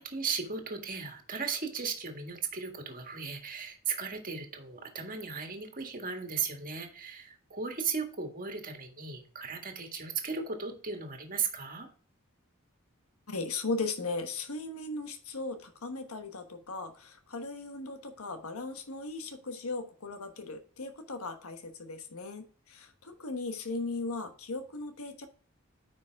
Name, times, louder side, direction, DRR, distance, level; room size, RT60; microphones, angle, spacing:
voice 1, 0.0-11.9, right 5 dB, 40° right, 4 dB, 1.7 m, -36 dB
voice 2, 13.3-25.3, left 3 dB, 80° left, 7 dB, 1.2 m, -37 dB
9.6 x 5.2 x 3.5 m, 0.42 s
head